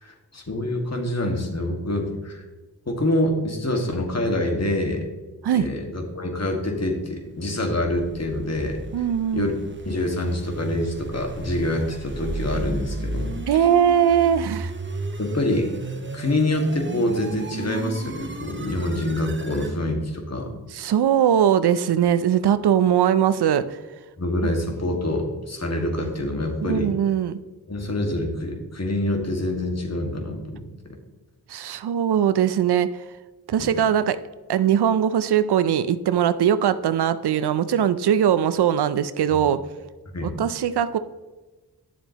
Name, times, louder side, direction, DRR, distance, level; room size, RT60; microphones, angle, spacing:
voice 1, 0.0-2.4 2.9-5.0 5.5-8.8 9.3-9.5 9.9-13.3 15.2-15.7 16.1-20.5 24.2-26.9 27.7-31.0 33.6-33.7 39.3-39.4 40.1-40.4, left 1 dB, 40° left, 2 dB, 1.8 m, -26 dB
sound 1, 7.6-19.8, right 2 dB, 30° right, 0.9 m, -34 dB
voice 2, 8.9-9.5 13.5-14.7 20.7-23.8 26.6-27.3 31.5-32.9 33.5-34.2 34.5-39.6 40.2-41.0, right 9 dB, 80° right, 13 dB, 0.5 m, -20 dB
10.0 x 7.0 x 2.9 m, 1.2 s
cardioid pair, 45°, 39 cm